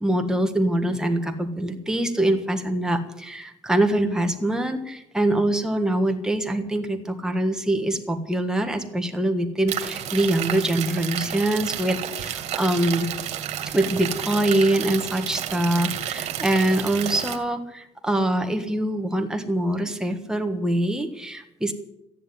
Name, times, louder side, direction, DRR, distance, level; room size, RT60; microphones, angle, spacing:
voice 1, 0.0-13.1 13.7-21.7, right 1 dB, 5° right, 5 dB, 1.5 m, -24 dB
sound 1, 9.7-17.4, right 10 dB, 70° right, 1.9 m, -31 dB
14.0 x 10.0 x 9.9 m, 0.86 s
cardioid pair, 165°, 12 cm